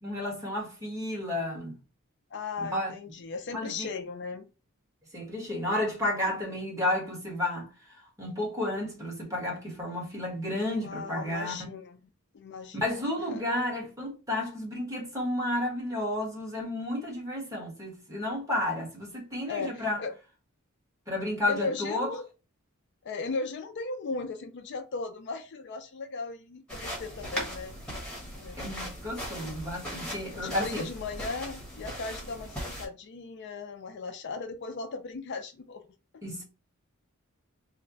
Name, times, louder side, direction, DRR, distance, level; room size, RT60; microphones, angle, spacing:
voice 1, 0.0-1.8 2.6-2.9 3.5-3.9 5.1-11.6 12.8-20.0 21.1-22.1 28.6-30.8 36.2-36.4, left 1 dB, 15° right, 1.4 m, -32 dB
voice 2, 2.3-4.5 6.3-6.6 10.8-12.0 12.3-12.8 13.3-13.4 19.5-20.1 21.5-22.3 23.0-27.7 28.3-28.8 30.3-35.9, left 4 dB, 55° left, 0.4 m, -37 dB
sound 1, 26.7-32.9, equal, 5° left, 1.3 m, -39 dB
3.2 x 2.2 x 3.8 m
head